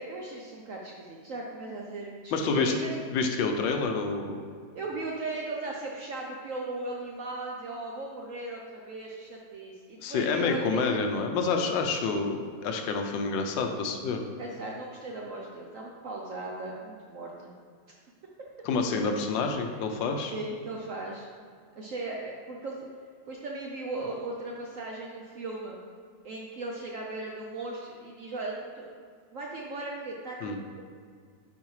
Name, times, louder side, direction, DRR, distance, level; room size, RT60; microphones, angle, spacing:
voice 1, 0.0-3.0 4.7-10.8 14.4-17.5 20.3-21.3 21.8-22.8 23.3-25.8 26.2-28.9 29.3-30.8, right 2 dB, 65° right, -1 dB, 0.8 m, -37 dB
voice 2, 2.3-2.7 3.1-4.4 10.0-12.4 12.6-14.2 18.6-20.3 30.4-30.6, left 4 dB, 85° left, 4 dB, 1.4 m, -28 dB
9.4 x 4.2 x 3.1 m, 2.1 s
omnidirectional pair, 2.0 m